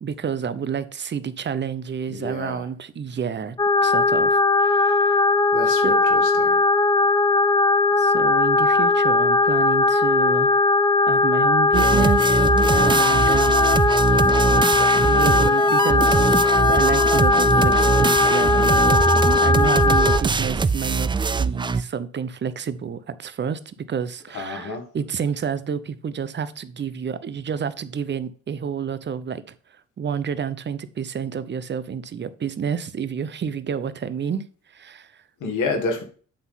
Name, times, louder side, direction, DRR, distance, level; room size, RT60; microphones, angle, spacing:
voice 1, 0.0-3.6 3.8-5.3 5.7-6.0 8.0-10.5 11.1-12.5 12.7-13.8 15.0-16.4 16.7-29.4 30.0-34.4 34.7-35.2, right 7 dB, 35° right, 0.7 m, -29 dB
voice 2, 2.1-2.7 5.5-6.6 24.3-24.9 35.4-36.0, left 3 dB, 80° left, 2.0 m, -29 dB
sound 1, 3.6-20.2, left 3 dB, 15° left, 0.7 m, -19 dB
sound 2, 11.7-21.8, right 4 dB, 15° right, 0.4 m, -22 dB
8.5 x 3.8 x 5.6 m
cardioid pair, 90°, 30 cm